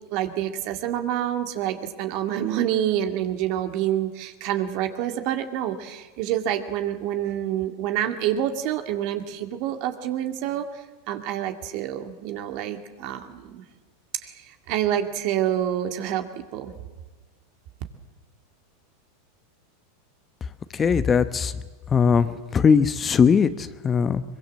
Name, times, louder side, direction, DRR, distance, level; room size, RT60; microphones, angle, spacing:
voice 1, 0.1-13.6 14.2-16.7, right 11 dB, 55° right, 7 dB, 2.2 m, -27 dB
voice 2, 20.7-21.6 21.9-24.2, left 6 dB, 25° left, 12 dB, 1.0 m, -20 dB
23.0 x 22.0 x 7.6 m, 1.3 s
hypercardioid pair, 100°, 0 cm